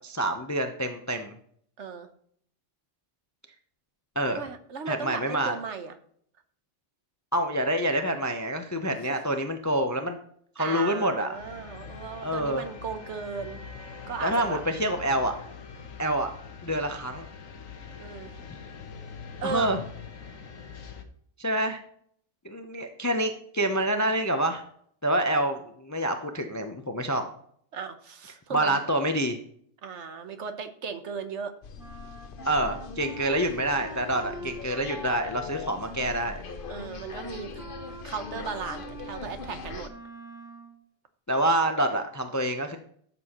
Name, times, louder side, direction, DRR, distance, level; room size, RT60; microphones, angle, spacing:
voice 1, 0.0-1.3 4.2-4.4 4.9-5.6 7.3-10.2 10.6-11.3 12.2-12.6 14.2-15.4 16.0-16.3 16.6-17.3 19.4-19.8 21.4-21.8 22.4-24.6 25.0-27.2 28.5-29.4 32.4-36.4 41.3-42.8, right 1 dB, 20° left, 6 dB, 0.5 m, -27 dB
voice 2, 1.8-2.1 4.3-5.9 10.6-13.6 14.1-14.6 18.0-18.3 19.4-19.7 27.7-28.8 29.8-31.5 36.7-37.5 38.0-39.9, right 6 dB, 65° right, 9 dB, 1.2 m, -36 dB
sound 1, 11.3-21.0, left 5 dB, 80° left, 1.4 m, -43 dB
sound 2, 31.6-39.9, left 5 dB, 50° left, 0.8 m, -41 dB
Wind instrument woodwind instrument, 31.8-40.8, equal, 5° right, 1.0 m, -45 dB
12.5 x 7.0 x 3.0 m, 0.63 s
omnidirectional pair, 1.3 m